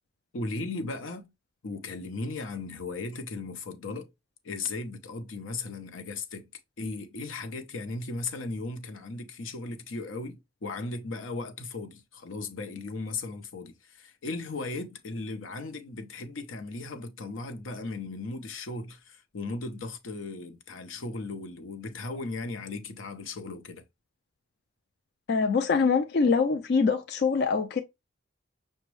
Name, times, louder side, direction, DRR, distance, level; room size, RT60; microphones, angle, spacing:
voice 1, 0.3-1.3 1.6-4.1 4.4-6.5 6.8-23.8, left 3 dB, 90° left, 0.7 m, -37 dB
voice 2, 25.3-27.8, left 5 dB, 55° left, 0.4 m, -24 dB
5.9 x 2.2 x 3.1 m
head